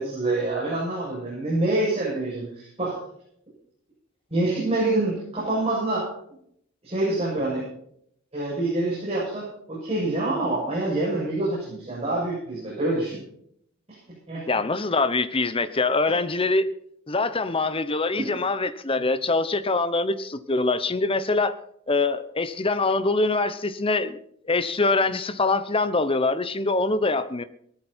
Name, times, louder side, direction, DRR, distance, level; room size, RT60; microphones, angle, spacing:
voice 1, 0.0-3.0 4.3-6.1 6.8-7.7 8.3-13.2 14.3-14.4 18.2-18.3, right 2 dB, 30° right, 7.6 m, -26 dB
voice 2, 14.5-16.7 17.1-21.6 21.9-24.2 24.5-27.4, left 3 dB, 25° left, 0.9 m, -24 dB
19.0 x 13.5 x 4.5 m
head